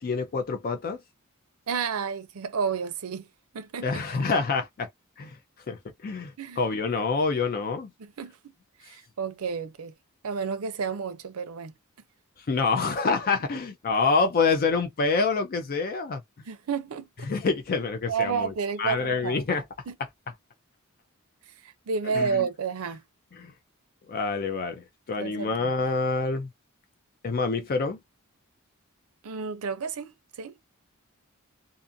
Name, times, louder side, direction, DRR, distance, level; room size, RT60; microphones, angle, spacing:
voice 1, 0.0-1.0 3.8-4.9 5.2-5.4 5.7-7.9 12.5-16.2 17.3-18.5 18.8-19.6 22.1-22.5 23.4-23.5 24.1-26.5 27.2-28.0, left 4 dB, 45° left, 0.4 m, -27 dB
voice 2, 1.7-3.3 3.5-3.9 6.4-6.6 8.0-8.3 8.8-9.9 10.2-11.7 16.5-17.3 18.1-19.4 19.9-20.0 21.6-23.0 25.2-25.7 29.2-30.5, right 6 dB, 85° right, 0.5 m, -31 dB
2.5 x 2.5 x 2.6 m
head